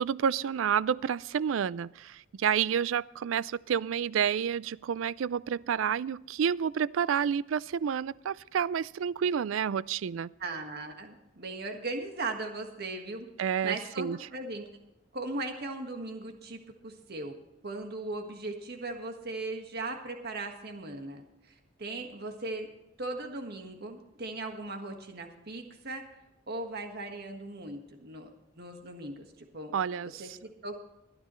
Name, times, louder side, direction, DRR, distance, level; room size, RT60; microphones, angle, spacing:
voice 1, 0.0-10.3 13.4-14.2 29.7-30.2, right 8 dB, 80° right, 0.4 m, -29 dB
voice 2, 10.4-13.3 13.6-14.6 15.1-17.3 17.6-22.7 23.0-26.2 26.5-28.3 28.5-29.3 29.5-29.7 30.2-30.8, right 2 dB, 55° right, 1.6 m, -38 dB
25.0 x 9.6 x 3.1 m
head